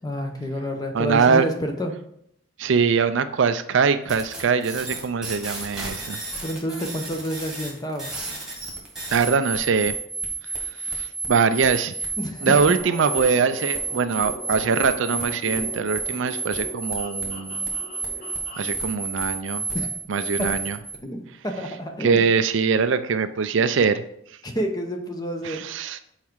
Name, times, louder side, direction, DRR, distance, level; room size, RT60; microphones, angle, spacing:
voice 1, 0.0-1.9 6.4-8.1 12.2-12.5 19.7-19.9 20.4-20.5 21.0-22.3 24.4-25.6, equal, 20° left, 4 dB, 0.8 m, -29 dB
voice 2, 0.9-1.4 2.6-6.2 9.1-9.9 10.9-11.9 12.4-17.7 18.6-19.6 20.1-20.8 22.0-24.0 25.4-26.0, right 5 dB, 60° right, 11 dB, 0.4 m, -22 dB
sound 1, 4.1-20.9, right 3 dB, 5° right, 1.8 m, -31 dB
sound 2, 12.8-18.7, equal, 35° left, 3.2 m, -40 dB
7.3 x 4.7 x 4.6 m, 0.72 s
head